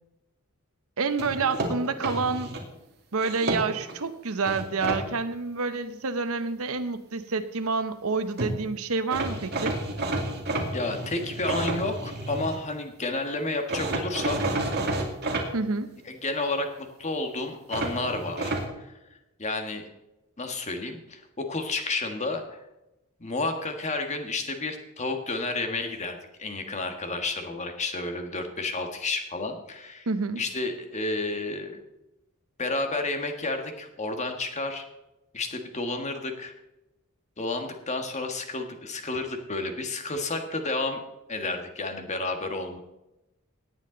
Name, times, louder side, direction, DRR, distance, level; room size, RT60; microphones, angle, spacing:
voice 1, 1.0-2.5 3.1-9.8 15.5-15.9 30.1-30.4, right 4 dB, 70° right, 10 dB, 0.9 m, -28 dB
sound 1, 1.2-2.6 3.2-4.0 4.4-5.0 8.1-8.2 8.4-8.5 9.1-12.6 13.7-15.5 17.7-18.7, right 2 dB, 50° right, 2.2 m, -30 dB
voice 2, 10.7-14.5 16.0-18.9 19.4-19.9 20.4-22.6 23.2-30.1 30.3-31.8 32.6-34.8 35.3-36.5 37.4-41.0 41.3-42.8, left 2 dB, 30° left, 5 dB, 1.6 m, -31 dB
18.0 x 8.6 x 3.9 m, 0.94 s
head